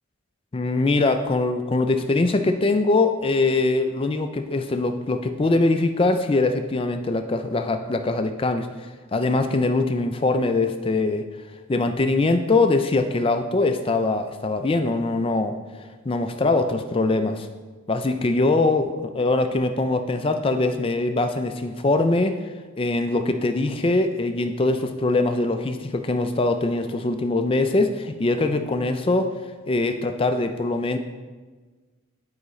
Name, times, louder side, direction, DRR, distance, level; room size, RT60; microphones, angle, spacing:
voice 1, 0.5-8.7 9.1-11.2 11.7-15.6 16.0-17.5 17.9-22.3 22.8-29.3 29.7-31.0, left 2 dB, 25° left, 7 dB, 0.3 m, -22 dB
10.5 x 4.8 x 3.1 m, 1.4 s
head